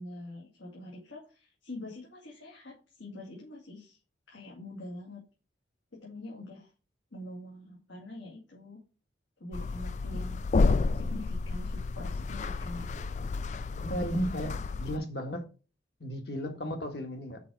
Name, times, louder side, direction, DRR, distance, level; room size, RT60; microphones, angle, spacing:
voice 1, 0.0-4.0 4.3-5.2 5.9-6.7 7.1-8.8 9.4-10.4 10.9-12.9, left 1 dB, 85° left, 2.3 m, -44 dB
sound 1, 9.5-15.0, left 3 dB, 40° left, 0.3 m, -30 dB
voice 2, 13.8-15.4 16.0-17.4, equal, 60° left, 1.6 m, -34 dB
5.9 x 5.0 x 6.3 m
head